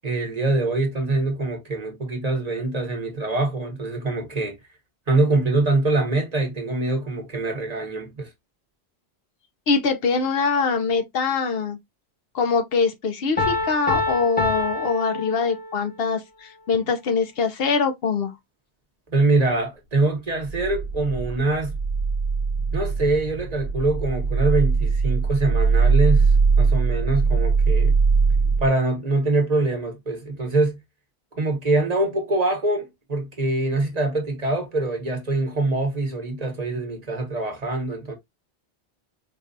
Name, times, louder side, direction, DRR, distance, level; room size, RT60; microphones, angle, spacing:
voice 1, 0.0-4.6 5.1-8.3 19.1-21.8 22.7-27.9 28.6-30.8 31.3-38.1, right 2 dB, 40° right, 1.1 m, -24 dB
voice 2, 9.7-11.8 12.3-18.3, left 5 dB, 65° left, 0.8 m, -23 dB
Piano, 13.4-15.9, left 3 dB, 10° left, 0.8 m, -26 dB
sound 1, 20.3-28.7, right 4 dB, 70° right, 0.9 m, -21 dB
4.6 x 2.3 x 2.5 m
omnidirectional pair, 1.1 m